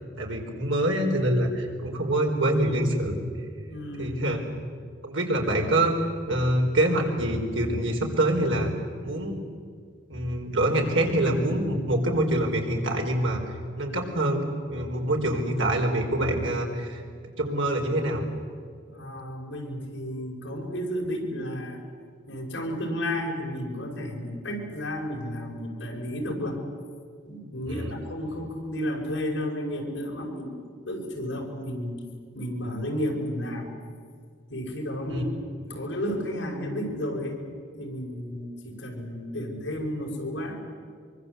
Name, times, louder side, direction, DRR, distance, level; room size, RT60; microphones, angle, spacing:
voice 1, 0.2-3.2 4.0-4.4 5.0-6.0 6.3-8.7 9.0-9.4 10.1-13.4 13.8-17.0 17.4-18.2 27.7-27.9 35.1-35.2, right 1 dB, 80° right, 1 dB, 4.4 m, -25 dB
voice 2, 3.7-4.2 18.9-21.8 22.3-26.6 27.2-30.6 30.9-32.0 32.3-33.7 34.5-35.3 35.6-37.4 37.8-40.6, equal, 70° left, 0 dB, 5.6 m, -32 dB
24.5 x 24.0 x 8.2 m, 2.1 s
head